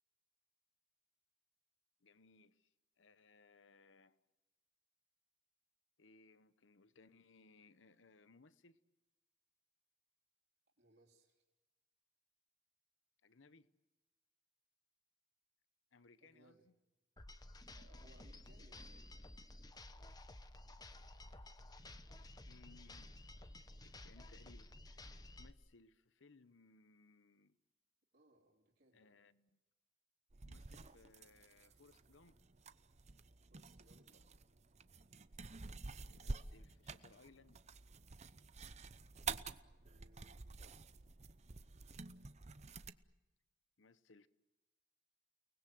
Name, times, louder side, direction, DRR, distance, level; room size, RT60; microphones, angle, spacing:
voice 1, 2.0-4.2 6.0-8.8 13.2-13.7 15.9-16.7 22.4-23.2 23.8-27.6 28.9-29.6 30.4-32.4 36.1-37.6 43.8-44.3, left 3 dB, 70° left, 0.9 m, -66 dB
voice 2, 10.8-11.4 16.2-16.7 17.7-19.3 28.1-29.2 33.5-34.3 39.8-40.9, right 1 dB, 55° right, 3.6 m, -69 dB
sound 1, 17.2-25.5, left 1 dB, 20° left, 1.0 m, -54 dB
sound 2, 30.3-42.9, right 4 dB, 35° right, 0.8 m, -50 dB
30.0 x 20.0 x 7.9 m
head